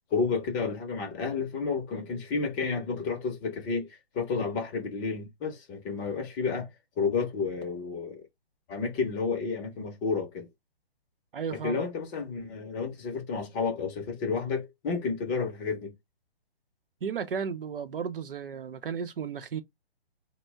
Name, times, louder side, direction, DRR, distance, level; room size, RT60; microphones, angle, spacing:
voice 1, 0.1-3.9 4.1-6.7 7.0-8.2 8.7-10.5 11.6-15.9, left 4 dB, 20° left, 0.7 m, -31 dB
voice 2, 11.3-11.9 17.0-19.6, right 6 dB, 60° right, 0.7 m, -34 dB
4.3 x 2.1 x 3.4 m
figure-of-eight pair, 135°, 31 cm